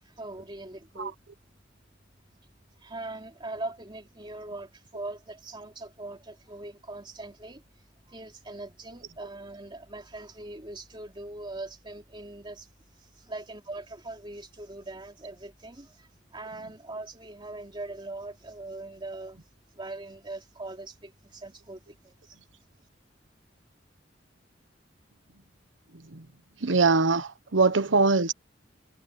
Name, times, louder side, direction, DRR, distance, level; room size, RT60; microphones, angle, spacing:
voice 1, 0.0-1.1 2.8-19.4 19.7-22.4, right 2 dB, 25° right, 3.0 m, -41 dB
voice 2, 25.9-26.3 26.6-28.3, right 4 dB, 90° right, 1.2 m, -23 dB
head